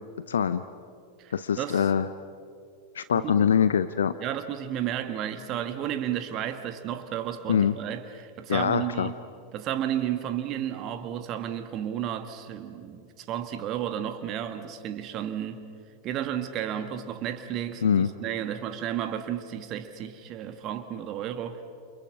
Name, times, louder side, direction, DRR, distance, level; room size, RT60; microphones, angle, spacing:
voice 1, 0.3-0.6 1.3-2.1 2.9-4.1 7.5-7.7 8.5-9.1 17.8-18.1, left 7 dB, 65° left, 0.6 m, -23 dB
voice 2, 1.2-1.9 3.1-3.5 4.2-9.2 9.5-15.6 16.0-21.6, right 10 dB, 35° right, 1.6 m, -32 dB
29.5 x 28.5 x 6.1 m
figure-of-eight pair, 90°, 0 cm